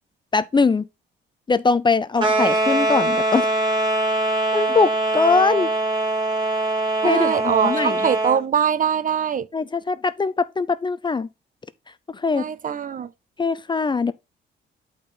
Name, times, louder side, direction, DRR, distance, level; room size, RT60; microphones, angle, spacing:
voice 1, 0.3-0.9 1.5-3.5 4.5-5.7 7.0-8.0 9.5-11.3 12.1-12.4 13.4-14.1, left 4 dB, 25° left, 0.5 m, -21 dB
sound 1, 2.2-8.4, right 2 dB, 25° right, 2.6 m, -22 dB
voice 2, 7.0-9.5 12.3-13.1, right 8 dB, 40° right, 0.6 m, -22 dB
8.6 x 4.4 x 3.8 m
cardioid pair, 90°, 20 cm